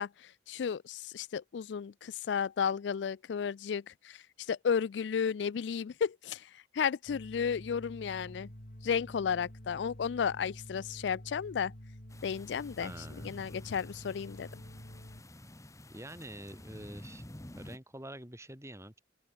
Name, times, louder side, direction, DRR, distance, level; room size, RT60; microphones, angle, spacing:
voice 1, 0.0-8.5 8.8-11.7 12.2-14.6, left 7 dB, 80° left, 0.4 m, -33 dB
sound 1, 7.1-15.2, equal, 50° left, 4.3 m, -49 dB
sound 2, 12.1-17.8, left 1 dB, 20° left, 1.6 m, -50 dB
voice 2, 12.8-13.4 15.9-17.2 17.6-19.0, right 1 dB, 15° right, 6.9 m, -46 dB
open air
head